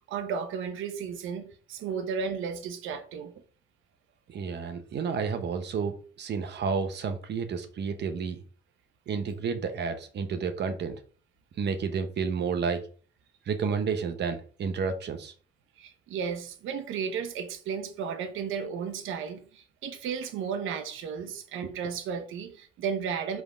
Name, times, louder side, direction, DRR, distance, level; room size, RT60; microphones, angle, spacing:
voice 1, 0.0-3.3 15.8-23.4, right 6 dB, 90° right, 0.9 m, -34 dB
voice 2, 4.3-8.4 9.1-11.0 11.6-12.8 13.5-15.3, right 5 dB, 60° right, 1.1 m, -31 dB
5.2 x 3.9 x 5.0 m
cardioid pair, 90°, 20 cm